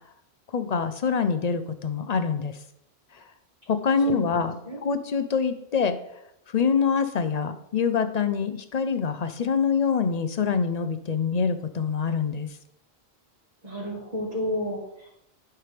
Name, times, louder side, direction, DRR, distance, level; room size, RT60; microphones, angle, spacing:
voice 1, 0.5-2.6 3.7-6.0 6.5-12.5, left 6 dB, 50° left, 10 dB, 0.6 m, -25 dB
voice 2, 4.1-4.4 4.7-4.8 13.6-15.2, left 1 dB, 40° right, -8 dB, 2.0 m, -31 dB
11.0 x 5.8 x 3.3 m, 0.77 s
omnidirectional pair, 1.1 m